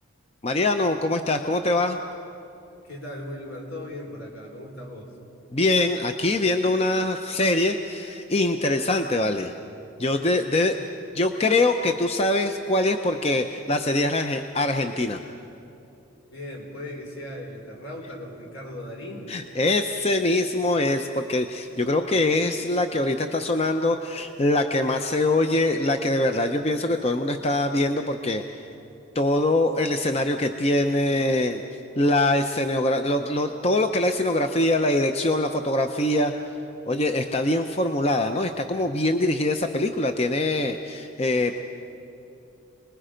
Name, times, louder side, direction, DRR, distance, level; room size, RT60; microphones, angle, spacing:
voice 1, 0.4-2.0 5.5-9.5 10.0-10.8 11.1-15.2 19.3-28.4 29.1-31.6 32.0-36.3 36.9-41.6, left 2 dB, 30° left, 6 dB, 0.6 m, -23 dB
voice 2, 2.8-5.1 16.3-19.3, left 1 dB, 75° left, 0 dB, 4.4 m, -37 dB
29.0 x 20.5 x 5.1 m, 2.8 s
head